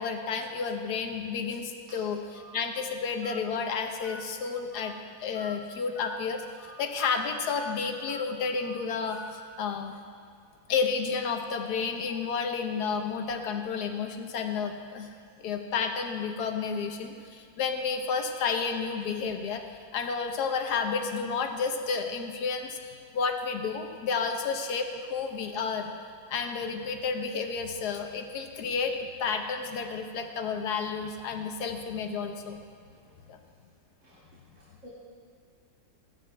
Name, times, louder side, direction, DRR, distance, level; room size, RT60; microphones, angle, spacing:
voice 1, 0.0-4.9 5.2-10.0 10.7-15.1 15.4-19.6 19.9-25.9 26.3-32.6 33.3-33.4, left 5 dB, 75° left, 5 dB, 1.4 m, -31 dB
Telephone, 2.3-2.5 3.2-3.4 4.0-4.2 4.7-4.9 5.3-5.6 5.9-6.2 6.6-6.7 7.1-7.3 7.5-7.7 8.1-8.2 8.5-8.8 9.1-9.3, left 2 dB, 45° left, 1.5 m, -44 dB
voice 2, 32.9-33.3 34.0-34.2 34.6-34.9, equal, 45° right, -9 dB, 2.4 m, -54 dB
15.5 x 11.5 x 3.4 m, 2.3 s
omnidirectional pair, 1.8 m